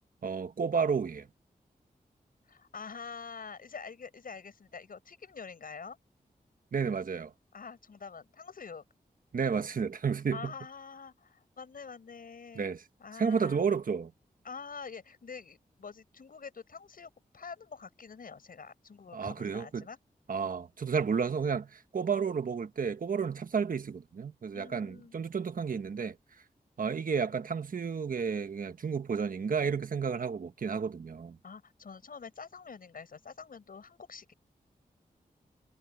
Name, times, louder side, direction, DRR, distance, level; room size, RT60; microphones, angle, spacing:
voice 1, 0.2-1.3 6.7-7.3 9.3-10.5 12.5-12.8 13.2-14.1 19.1-19.8 20.3-26.2 26.8-31.4, right 6 dB, 65° right, 1.3 m, -31 dB
voice 2, 2.5-6.0 7.5-8.8 10.3-12.7 13.0-13.7 14.4-20.0 24.5-25.1 31.4-34.3, left 5 dB, 70° left, 5.9 m, -46 dB
wide cardioid pair, 85°, 15 cm